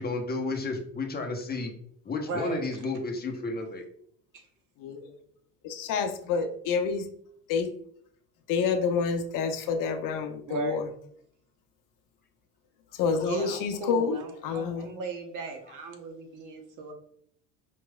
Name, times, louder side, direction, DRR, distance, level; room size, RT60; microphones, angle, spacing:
voice 1, 0.0-1.7 2.0-3.8, left 3 dB, 25° left, 3 dB, 0.8 m, -32 dB
voice 2, 2.2-2.7 4.3-4.4 10.5-10.8 13.2-16.9, right 4 dB, 50° right, 4 dB, 1.0 m, -36 dB
voice 3, 4.8-5.2 5.6-7.1 7.5-7.7 8.5-10.9 12.9-14.9, left 5 dB, 55° left, 6 dB, 0.7 m, -28 dB
4.5 x 2.9 x 2.2 m, 0.64 s
hypercardioid pair, 80°, 39 cm